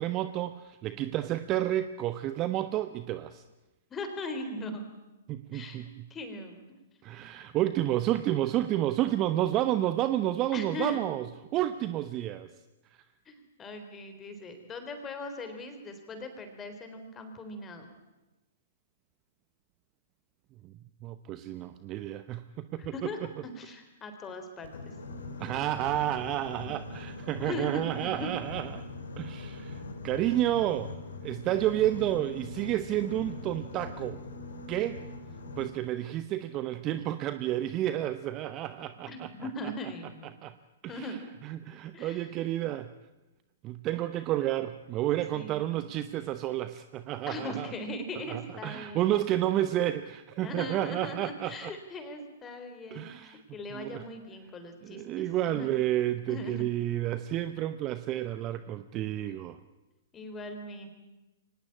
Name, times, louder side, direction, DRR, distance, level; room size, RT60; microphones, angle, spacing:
voice 1, 0.0-3.4 5.3-6.1 7.0-12.5 20.6-20.7 21.0-23.1 25.4-28.8 29.2-30.9 31.2-34.2 34.7-35.0 35.6-39.5 40.4-40.5 40.8-42.9 43.6-47.7 48.3-51.7 52.9-53.4 53.7-54.1 54.8-59.6, right 13 dB, 30° right, 12 dB, 0.9 m, -30 dB
voice 2, 3.9-4.8 5.5-6.6 10.5-11.0 13.3-17.9 22.9-24.7 26.6-26.7 27.4-28.3 39.1-40.4 40.9-41.2 41.9-42.3 45.3-45.9 47.3-49.3 50.4-55.8 56.3-56.6 60.1-60.9, left 1 dB, 20° left, 7 dB, 3.8 m, -39 dB
Boat Water vehicle, 24.6-35.6, left 2 dB, 70° left, 3.9 m, -42 dB
24.0 x 19.0 x 8.8 m, 1.1 s
figure-of-eight pair, 115°, 0 cm